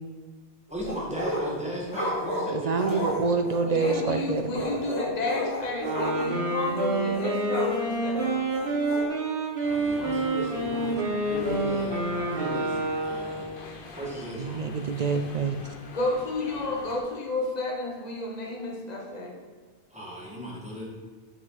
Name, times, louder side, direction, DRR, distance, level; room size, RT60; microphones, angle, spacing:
sound 1, 0.7-1.6 1.9-4.1 4.5-6.4 6.7-6.8 7.1-7.8 8.2-9.0, equal, 80° left, 2.8 m, -32 dB
voice 1, 0.7-3.1 9.7-13.5 13.9-14.9 19.9-20.8, right 1 dB, 5° right, -5 dB, 1.9 m, -37 dB
voice 2, 2.5-4.4 14.4-15.6, right 4 dB, 50° right, 6 dB, 0.5 m, -26 dB
voice 3, 3.6-8.3 15.9-19.4, left 2 dB, 40° left, -1 dB, 1.3 m, -32 dB
Wind instrument woodwind instrument, 5.8-13.7, right 2 dB, 85° right, 1.8 m, -28 dB
sound 2, 9.6-17.0, left 3 dB, 60° left, 1.0 m, -44 dB
8.6 x 5.9 x 4.1 m, 1.5 s
omnidirectional pair, 1.1 m